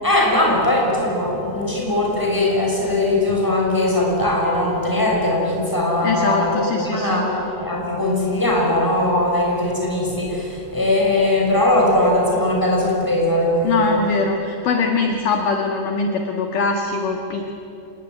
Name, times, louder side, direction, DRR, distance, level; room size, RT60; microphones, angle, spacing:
voice 1, 0.0-13.9, left 1 dB, 5° left, -2 dB, 6.0 m, -20 dB
voice 2, 6.0-7.2 13.6-17.5, left 4 dB, 60° left, 2 dB, 2.8 m, -22 dB
27.0 x 19.5 x 10.0 m, 2.8 s
omnidirectional pair, 5.0 m